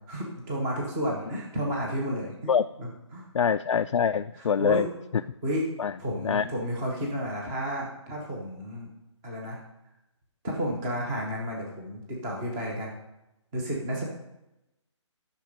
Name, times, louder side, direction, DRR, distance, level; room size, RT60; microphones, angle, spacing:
voice 1, 0.1-2.5 2.8-3.3 4.3-4.9 5.4-5.7 6.0-8.9 9.2-9.6 10.4-12.9 13.5-14.0, equal, 5° right, -2 dB, 0.6 m, -32 dB
voice 2, 3.3-4.9 5.8-5.9 6.2-6.5, left 7 dB, 85° left, 9 dB, 0.4 m, -24 dB
11.5 x 6.0 x 5.2 m, 0.93 s
hypercardioid pair, 180°, 16 cm